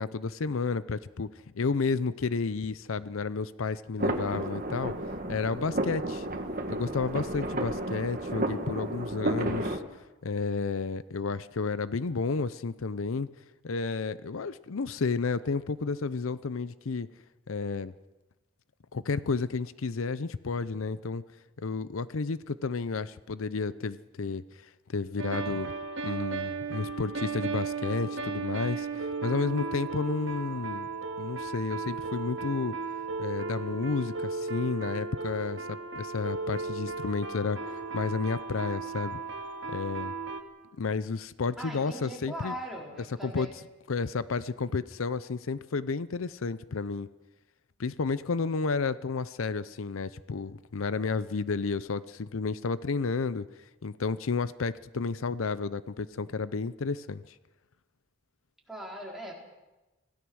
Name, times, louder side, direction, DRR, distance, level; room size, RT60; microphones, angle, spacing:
voice 1, 0.0-5.0 5.3-6.3 6.7-9.8 10.2-13.3 13.6-17.1 17.5-17.9 18.9-21.2 21.6-24.4 24.9-25.7 26.0-30.9 31.2-32.8 33.2-39.2 39.7-40.1 40.8-42.5 43.2-43.5 43.9-47.1 47.8-53.5 53.8-57.2, left 4 dB, 85° left, 15 dB, 0.6 m, -31 dB
sound 1, 4.0-9.8, right 1 dB, 40° right, 1.8 m, -32 dB
sound 2, 25.2-40.4, right 4 dB, 60° right, 2.2 m, -35 dB
voice 2, 41.6-43.5 58.7-59.3, right 1 dB, ahead, -3 dB, 4.2 m, -40 dB
25.0 x 17.0 x 6.3 m, 1.1 s
head